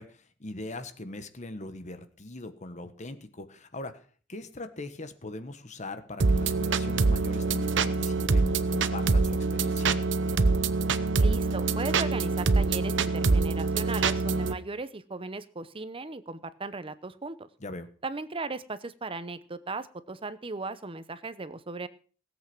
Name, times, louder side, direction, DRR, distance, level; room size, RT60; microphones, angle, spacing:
voice 1, 0.0-4.0 4.3-10.0 17.6-17.9, left 2 dB, 40° left, 10 dB, 1.3 m, -41 dB
sound 1, 6.2-14.5, right 3 dB, 70° right, 0.8 m, -25 dB
voice 2, 11.2-17.5 18.0-21.9, right 3 dB, 30° right, 14 dB, 0.8 m, -37 dB
17.0 x 8.3 x 6.1 m, 0.42 s
head